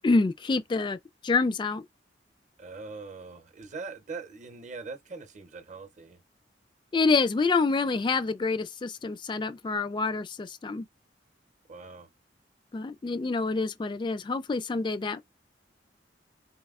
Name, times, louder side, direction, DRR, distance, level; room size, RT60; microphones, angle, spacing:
voice 1, 0.0-1.0 1.2-1.8 6.9-10.9 12.7-15.2, left 3 dB, 25° left, 0.3 m, -27 dB
voice 2, 2.6-6.2 11.7-12.1, right 4 dB, 40° right, 0.7 m, -42 dB
4.1 x 4.1 x 2.4 m
head